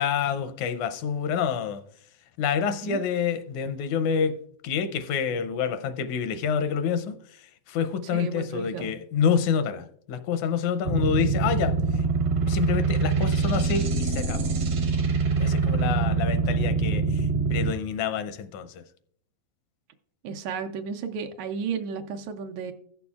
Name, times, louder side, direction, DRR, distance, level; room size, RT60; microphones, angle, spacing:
voice 1, 0.0-1.8 2.4-4.4 4.6-7.1 7.7-11.8 12.5-14.5 15.4-18.7, left 7 dB, 85° left, 2.0 m, -27 dB
voice 2, 2.6-3.0 8.0-8.9 20.2-22.7, right 6 dB, 75° right, 1.9 m, -33 dB
sound 1, 10.8-17.7, right 4 dB, 55° right, 1.2 m, -24 dB
16.0 x 6.9 x 2.3 m
omnidirectional pair, 3.3 m